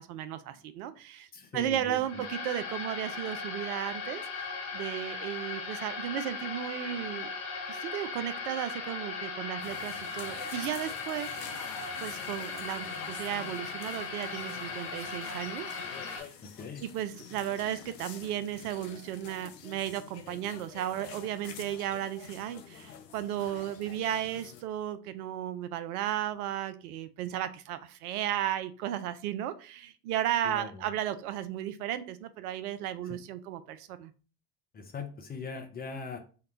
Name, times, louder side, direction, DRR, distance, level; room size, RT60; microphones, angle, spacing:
voice 1, 0.0-1.3 1.5-7.3 7.7-11.3 12.0-16.3 16.9-34.1, right 11 dB, 65° right, 12 dB, 0.5 m, -34 dB
voice 2, 1.3-2.2 16.4-16.8 30.4-30.9 33.0-33.2 34.7-36.2, left 5 dB, 20° left, 4 dB, 0.4 m, -41 dB
sound 1, 2.0-16.2, left 4 dB, 50° left, 1.3 m, -38 dB
sound 2, 9.6-24.6, left 8 dB, 85° left, 0.6 m, -48 dB
3.7 x 2.2 x 3.8 m, 0.37 s
figure-of-eight pair, 70°, 48 cm